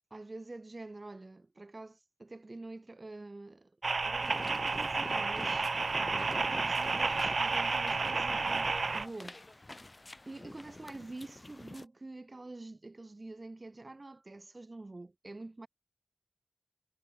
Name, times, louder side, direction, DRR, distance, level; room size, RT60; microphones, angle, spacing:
voice 1, 0.1-8.7 8.9-9.6 10.2-15.7, right 2 dB, 55° right, 1.5 m, -47 dB
sound 1, 3.8-9.1, right 4 dB, 90° right, 0.5 m, -31 dB
sound 2, 4.2-11.8, left 2 dB, 45° left, 1.6 m, -47 dB
wide cardioid pair, 40°, 0 cm